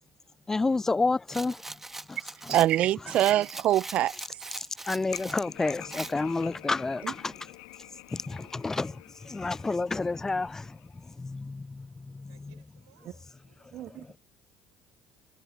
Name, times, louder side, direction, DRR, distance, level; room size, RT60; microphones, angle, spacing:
voice 1, 0.5-1.5 2.4-2.6 4.6-7.3 8.1-9.0 9.2-12.5 14.0-14.2, left 3 dB, 20° left, 0.5 m, -30 dB
Rattle, 1.3-5.4 5.9-6.1, right 2 dB, 10° right, 1.8 m, -41 dB
voice 2, 2.5-4.1 7.0-7.1 13.7-14.0, right 13 dB, 55° right, 0.5 m, -24 dB
sound 1, 5.1-11.1, left 30 dB, 70° left, 2.6 m, -48 dB
voice 3, 8.3-8.7 12.3-14.2, right 17 dB, 75° right, 4.1 m, -64 dB
figure-of-eight pair, 55°, 3 cm